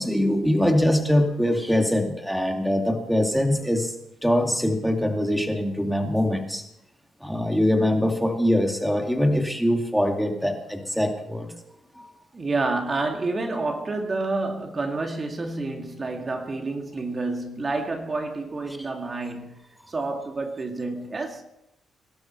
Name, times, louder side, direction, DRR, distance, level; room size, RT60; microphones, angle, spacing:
voice 1, 0.0-3.9 4.2-6.6 7.2-11.5 12.0-12.1 18.8-18.9, left 1 dB, ahead, 2.2 m, -23 dB
voice 2, 12.3-19.5 19.9-21.4, right 3 dB, 30° right, 2.1 m, -29 dB
23.0 x 12.5 x 4.5 m
cardioid pair, 90°, 0 cm